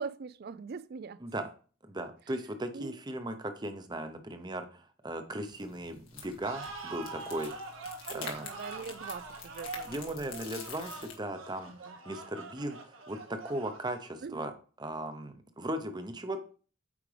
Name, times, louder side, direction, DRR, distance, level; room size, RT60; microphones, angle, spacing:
voice 1, 0.0-1.2 2.7-3.0 8.1-10.5 11.7-12.0 14.2-14.4, right 5 dB, 50° right, 0.4 m, -42 dB
voice 2, 1.8-7.5 8.1-8.5 9.9-14.5 14.8-16.4, right 1 dB, 20° right, 0.8 m, -37 dB
sound 1, 5.5-11.1, left 5 dB, 90° left, 1.7 m, -47 dB
sound 2, 6.4-14.3, right 3 dB, 75° right, 1.2 m, -45 dB
8.4 x 5.0 x 3.4 m
head